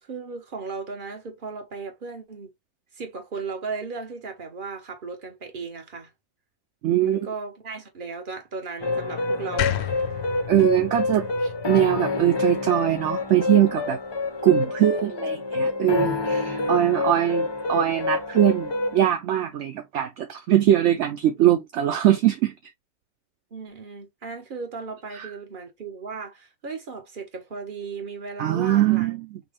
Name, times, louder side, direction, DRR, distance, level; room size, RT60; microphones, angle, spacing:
voice 1, 0.0-2.5 2.9-6.1 7.0-9.9 14.9-15.0 16.6-17.0 23.5-29.1, right 4 dB, 35° right, 1.3 m, -36 dB
voice 2, 6.8-7.2 10.5-14.0 14.4-22.5 25.1-25.3 28.4-29.4, right 12 dB, 65° right, 0.9 m, -22 dB
sound 1, 8.8-19.1, left 3 dB, 35° left, 0.4 m, -27 dB
sound 2, 9.6-12.7, left 12 dB, 65° left, 0.7 m, -32 dB
6.0 x 2.3 x 3.3 m
omnidirectional pair, 1.5 m